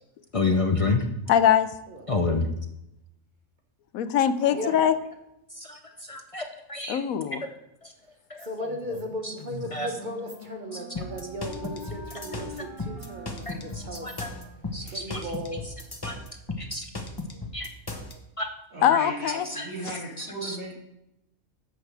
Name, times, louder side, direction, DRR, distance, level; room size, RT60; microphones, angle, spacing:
voice 1, 0.3-1.0 2.1-2.5 5.6-5.8 6.1-6.4 6.7-7.0 8.3-8.5 9.2-9.3 9.7-9.9 13.5-14.3 14.7-15.2 16.0-16.1 16.6-16.9 17.5-17.7 18.4-18.5 19.5-19.7 20.2-20.7, left 3 dB, 45° left, 5 dB, 0.4 m, -29 dB
voice 2, 1.3-1.7 3.9-4.9 6.9-7.4 18.8-19.5, left 9 dB, 85° left, 12 dB, 1.1 m, -22 dB
voice 3, 4.4-4.8 14.8-15.1 18.7-20.7, right 2 dB, 80° right, -7 dB, 3.5 m, -37 dB
voice 4, 8.4-14.1 14.9-15.7, equal, 35° right, 2 dB, 1.4 m, -36 dB
Wind instrument woodwind instrument, 9.2-15.3, left 3 dB, ahead, 3.5 m, -46 dB
sound 1, 11.0-18.1, left 2 dB, 20° left, 0.7 m, -35 dB
10.5 x 7.6 x 3.3 m, 0.86 s
omnidirectional pair, 1.4 m